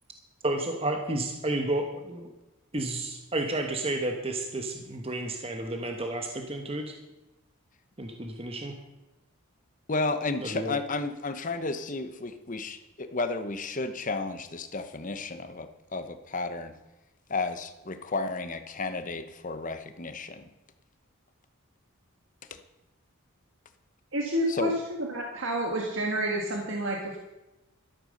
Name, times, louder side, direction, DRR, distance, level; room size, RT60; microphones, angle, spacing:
voice 1, 0.4-2.3 2.7-7.0 8.0-8.8 10.4-10.8, right 2 dB, 25° right, 4 dB, 1.1 m, -31 dB
voice 2, 9.9-16.7 17.3-20.4 22.5-22.6 24.5-24.7, left 3 dB, 35° left, 9 dB, 0.9 m, -32 dB
voice 3, 24.1-27.2, right 1 dB, 55° right, 1 dB, 1.6 m, -29 dB
13.0 x 9.0 x 6.5 m, 1.0 s
head